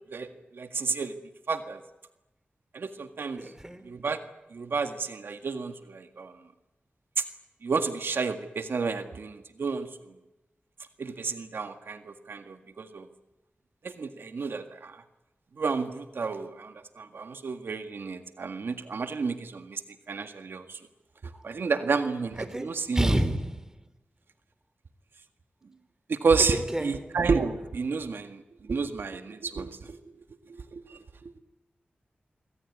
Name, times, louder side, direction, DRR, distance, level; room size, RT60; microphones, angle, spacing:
voice 1, 0.5-1.1 1.5-1.8 2.7-3.4 3.9-4.2 4.5-6.3 7.2-7.3 7.6-9.9 11.0-13.1 13.8-15.0 15.6-19.8 20.1-20.8 21.4-23.2 26.1-28.4 28.7-30.0 30.7-31.0, right 4 dB, 80° right, 1.8 m, -30 dB
voice 2, 3.4-3.9 21.3-21.4 22.4-23.8 26.5-27.1, right 1 dB, 15° right, 3.2 m, -30 dB
26.5 x 22.0 x 9.7 m
wide cardioid pair, 75°, 4 cm